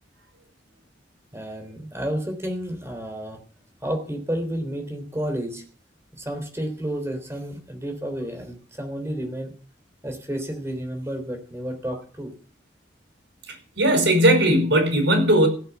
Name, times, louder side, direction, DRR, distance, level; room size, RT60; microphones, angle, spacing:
voice 1, 1.3-3.4 3.8-5.6 6.2-9.5 10.0-12.3, right 1 dB, 15° right, 3.5 m, -31 dB
voice 2, 13.8-15.5, right 1 dB, 80° right, 5.4 m, -18 dB
16.0 x 8.2 x 7.1 m
head